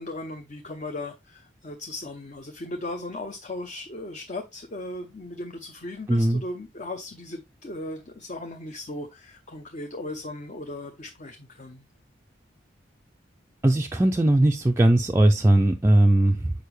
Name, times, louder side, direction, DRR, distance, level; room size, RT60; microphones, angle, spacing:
voice 1, 0.0-11.8, left 2 dB, 40° left, 0.7 m, -37 dB
voice 2, 6.1-6.4 13.6-16.5, right 1 dB, 15° right, 0.4 m, -19 dB
6.6 x 4.9 x 3.2 m
head